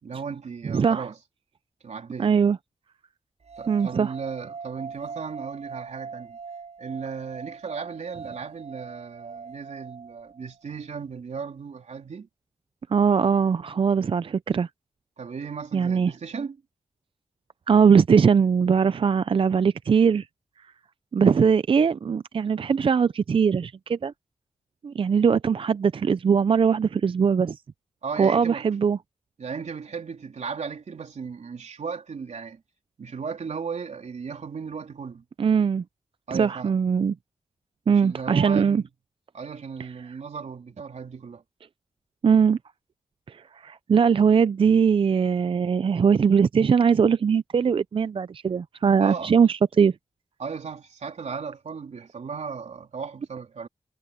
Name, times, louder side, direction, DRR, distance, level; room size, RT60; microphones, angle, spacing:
voice 1, 0.0-1.2 1.8-2.4 3.6-6.4 6.8-12.3 15.2-16.6 28.0-28.7 29.4-32.6 33.0-35.2 36.3-36.8 37.9-38.9 39.3-41.4 49.0-49.3 50.4-53.7, right 5 dB, 85° right, 3.6 m, -36 dB
voice 2, 0.7-1.1 2.2-2.6 3.7-4.1 12.9-14.7 15.7-16.1 17.7-20.3 21.1-24.1 24.8-27.6 28.2-29.0 35.4-35.8 36.3-37.1 37.9-38.8 39.8-39.9 42.2-42.6 43.3-49.9, right 6 dB, 50° right, 0.4 m, -21 dB
sound 1, 3.4-10.6, right 5 dB, 70° right, 7.5 m, -41 dB
wide cardioid pair, 95°, 12 cm